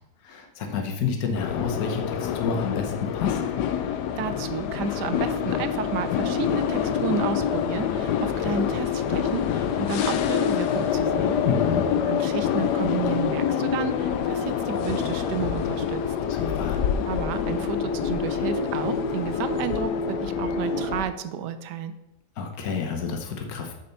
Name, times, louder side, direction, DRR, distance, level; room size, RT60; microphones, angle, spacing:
voice 1, 0.2-3.4 11.4-11.9 16.3-16.8 22.4-23.7, left 6 dB, 65° left, 3 dB, 1.5 m, -29 dB
sound 1, 1.3-21.0, left 7 dB, 80° left, 1.2 m, -26 dB
voice 2, 3.9-11.4 12.0-16.0 17.1-21.9, right 7 dB, 90° right, 11 dB, 1.3 m, -31 dB
6.8 x 5.1 x 5.6 m, 0.92 s
omnidirectional pair, 1.8 m